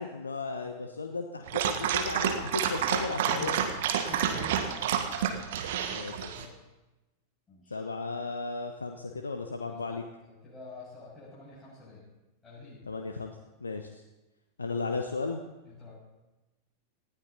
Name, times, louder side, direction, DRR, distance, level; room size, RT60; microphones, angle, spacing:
voice 1, 0.0-3.7 5.9-6.3 7.7-10.0 12.9-14.0 14.6-15.4, left 3 dB, 75° left, 5 dB, 1.0 m, -35 dB
Dog, 1.5-6.4, right 8 dB, 55° right, 1.5 m, -29 dB
voice 2, 2.8-3.8 4.1-5.1 6.3-6.6 7.5-7.9 9.6-12.1 12.4-12.9 15.7-15.9, left 3 dB, 15° left, -11 dB, 7.2 m, -47 dB
19.0 x 14.5 x 4.1 m, 1.0 s
figure-of-eight pair, 90°, 0 cm